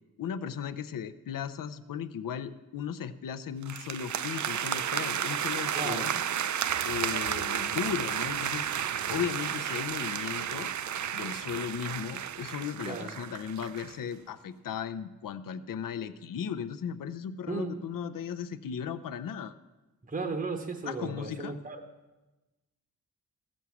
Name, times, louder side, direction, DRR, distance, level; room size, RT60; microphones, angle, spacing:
voice 1, 0.2-6.2 6.8-8.7 9.1-10.7 11.1-19.5 20.9-21.5, left 8 dB, 65° left, 10 dB, 0.6 m, -36 dB
sound 1, 3.6-14.0, right 9 dB, 55° right, 0.4 m, -32 dB
voice 2, 5.7-6.1 12.8-13.1 17.5-17.8 20.1-21.8, right 3 dB, 25° right, 4 dB, 0.8 m, -35 dB
15.0 x 6.3 x 7.0 m, 1.1 s
wide cardioid pair, 135°, 36 cm